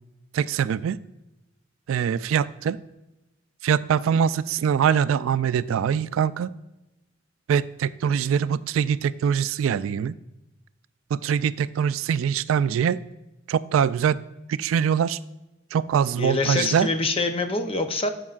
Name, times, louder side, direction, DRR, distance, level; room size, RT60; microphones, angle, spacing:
voice 1, 0.3-1.0 1.9-2.8 3.6-6.5 7.5-10.2 11.1-13.0 13.5-14.2 14.5-15.2 15.7-16.9, right 8 dB, 85° right, 17 dB, 0.3 m, -23 dB
voice 2, 16.2-18.1, left 3 dB, 30° left, 7 dB, 0.6 m, -25 dB
13.0 x 5.3 x 2.4 m, 0.98 s
head